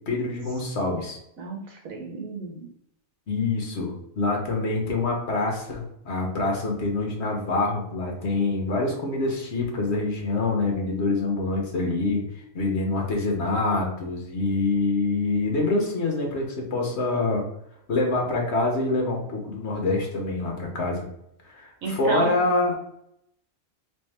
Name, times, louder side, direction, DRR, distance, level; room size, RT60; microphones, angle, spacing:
voice 1, 0.1-1.2 3.3-12.2 12.5-17.4 17.9-21.0 21.4-22.7, left 3 dB, 55° left, 1 dB, 1.2 m, -26 dB
voice 2, 1.4-2.7 21.8-22.4, right 3 dB, 80° right, 0 dB, 1.3 m, -31 dB
3.6 x 3.3 x 3.3 m, 0.77 s
omnidirectional pair, 1.4 m